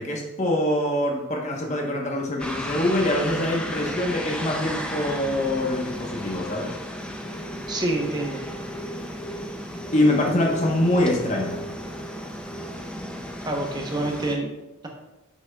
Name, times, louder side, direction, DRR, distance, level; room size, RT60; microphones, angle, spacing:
voice 1, 0.0-6.8 9.9-11.6, left 1 dB, 30° left, 0 dB, 1.0 m, -24 dB
sound 1, 2.4-14.3, equal, 5° left, 0.3 m, -34 dB
voice 2, 7.7-8.4 13.4-14.5, right 2 dB, 20° right, 1 dB, 0.8 m, -27 dB
8.1 x 6.1 x 2.3 m, 1.0 s
head